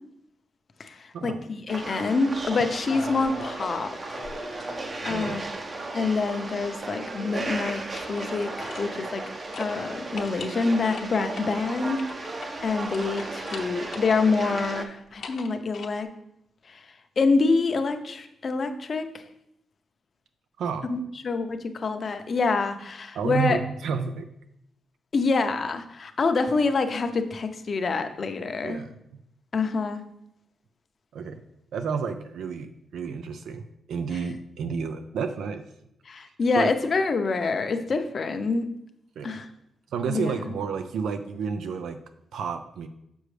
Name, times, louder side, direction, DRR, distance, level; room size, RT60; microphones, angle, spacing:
voice 1, 0.8-4.2 4.5-4.6 5.0-5.4 5.9-9.2 9.6-12.0 12.6-16.1 16.7-16.8 17.2-19.2 20.9-23.6 25.1-28.8 29.5-30.0 36.1-38.7 39.2-39.5 40.1-40.3, left 4 dB, 45° left, 7 dB, 0.6 m, -26 dB
sound 1, 1.7-14.8, right 2 dB, 30° right, 0.7 m, -35 dB
sound 2, 2.9-3.8 4.1-5.4 7.6-9.3 9.5-9.7 10.1-14.1 14.5-15.9, left 5 dB, 70° left, 0.9 m, -43 dB
voice 2, 20.6-20.9 23.1-24.3 28.6-29.2 31.1-31.4 31.7-35.6 36.2-36.7 39.2-39.4 39.9-42.0 42.3-42.9, right 6 dB, 85° right, 8 dB, 0.4 m, -31 dB
6.6 x 6.2 x 3.3 m, 0.78 s
cardioid pair, 120°, 0 cm